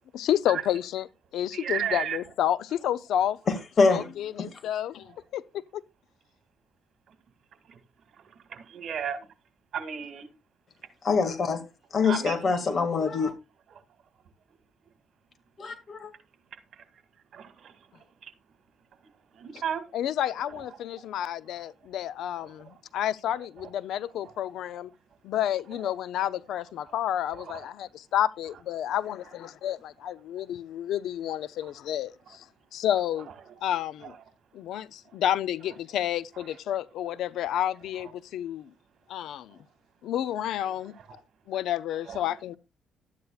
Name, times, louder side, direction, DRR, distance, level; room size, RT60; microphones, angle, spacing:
voice 1, 0.1-1.1 1.3-3.4 3.9-5.4 5.7-5.8 19.9-24.9 25.2-32.4 32.7-33.3 33.6-34.1 34.5-38.7 39.1-39.6 40.0-40.9 41.5-42.6, left 11 dB, 80° left, 0.5 m, -30 dB
voice 2, 1.5-2.2 7.1-7.2 7.7-7.8 8.1-9.3 9.7-10.3 12.0-12.6 13.7-13.8 16.7-16.8 17.3-18.3 19.0-19.8 20.5-20.8 22.4-22.8 23.6-23.7 24.2-24.3 25.7-26.3 26.9-27.0 27.3-27.7 31.6-31.7 32.3-32.4 33.4-33.6 34.0-34.2 35.1-35.2 36.4-36.6 37.1-37.2 39.5-39.6 40.7-41.2 42.0-42.6, right 8 dB, 65° right, 1.9 m, -37 dB
voice 3, 3.5-4.1 4.4-4.5 11.0-11.6 11.9-13.3 15.6-16.1, left 4 dB, 45° left, 2.0 m, -24 dB
12.5 x 9.6 x 2.4 m
cardioid pair, 90°, 0 cm